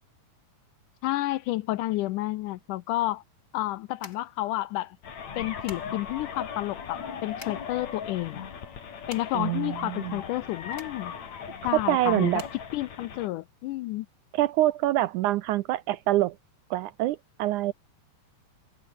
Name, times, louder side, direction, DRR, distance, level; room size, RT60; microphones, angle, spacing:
voice 1, 1.0-3.2 3.5-5.0 5.4-8.5 9.1-11.1 11.6-12.5 12.7-14.1, left 16 dB, 75° left, 2.0 m, -30 dB
sound 1, 2.6-13.7, left 2 dB, 25° left, 5.4 m, -51 dB
sound 2, 5.0-13.3, left 7 dB, 55° left, 4.0 m, -39 dB
voice 2, 9.3-10.2 11.7-12.4 14.3-16.4 16.7-17.7, right 15 dB, 80° right, 1.9 m, -25 dB
omnidirectional pair, 4.0 m